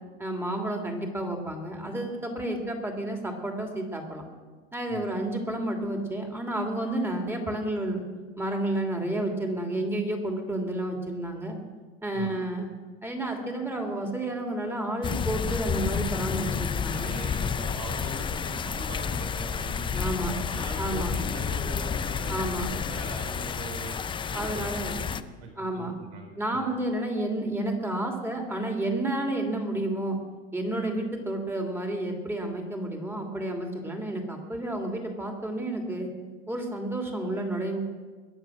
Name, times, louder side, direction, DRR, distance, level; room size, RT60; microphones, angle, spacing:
voice 1, 0.2-4.2 4.7-8.0 8.4-11.6 12.0-12.7 13.0-17.1 19.9-20.3 20.8-21.1 22.3-22.7 24.3-25.0 25.6-26.0 26.4-30.2 30.5-36.1 36.5-37.8, right 1 dB, 5° right, 2 dB, 2.8 m, -31 dB
sound 1, 15.0-25.2, left 7 dB, 15° left, 0.4 m, -30 dB
voice 2, 16.9-24.0 24.3-26.7, right 3 dB, 65° right, 2 dB, 3.7 m, -41 dB
22.0 x 7.5 x 6.4 m, 1.4 s
supercardioid pair, 110°, 33 cm